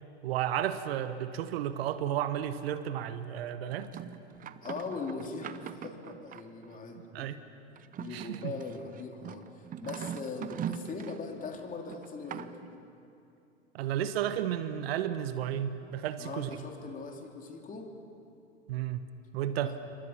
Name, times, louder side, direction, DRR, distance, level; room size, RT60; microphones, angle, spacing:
voice 1, 0.2-3.9 7.1-7.4 8.1-8.5 13.7-16.5 18.7-19.0 19.3-19.8, right 10 dB, 60° right, 11 dB, 1.2 m, -32 dB
sound 1, 3.7-6.8 7.8-11.3 11.9-12.8, right 9 dB, 25° right, 0.8 m, -42 dB
voice 2, 4.6-7.3 8.0-12.6 16.2-17.9 19.6-19.8, left 4 dB, 25° left, 3 dB, 3.1 m, -40 dB
28.0 x 24.5 x 5.9 m, 2.7 s
hypercardioid pair, 100°, 34 cm